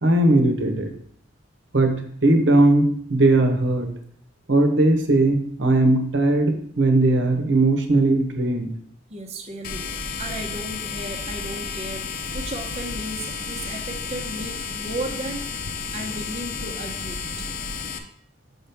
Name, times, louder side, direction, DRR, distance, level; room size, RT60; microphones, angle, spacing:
voice 1, 0.0-0.9 1.7-3.9 4.5-8.7, right 2 dB, 70° right, 5 dB, 1.1 m, -19 dB
voice 2, 9.1-9.8 10.2-15.5 15.9-17.2, right 1 dB, 35° right, 1 dB, 0.8 m, -34 dB
sound 1, 9.6-18.0, left 5 dB, 50° left, 0.7 m, -32 dB
6.2 x 5.9 x 3.5 m, 0.63 s
head